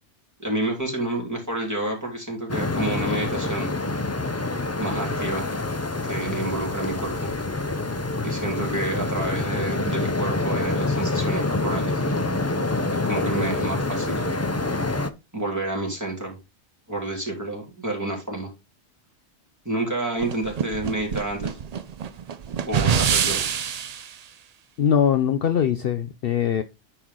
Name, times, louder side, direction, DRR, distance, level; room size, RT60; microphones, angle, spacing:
voice 1, 0.4-3.7 4.8-5.4 6.0-7.3 8.2-12.0 13.0-14.4 15.3-16.4 16.9-18.5 19.6-21.6 22.6-23.4, right 2 dB, 15° right, 3.3 m, -29 dB
sound 1, 2.5-15.1, left 2 dB, 20° left, 0.4 m, -26 dB
sound 2, 20.2-24.1, right 7 dB, 50° right, 0.5 m, -25 dB
voice 2, 24.8-26.6, left 8 dB, 60° left, 0.7 m, -21 dB
9.8 x 4.6 x 3.7 m
omnidirectional pair, 1.2 m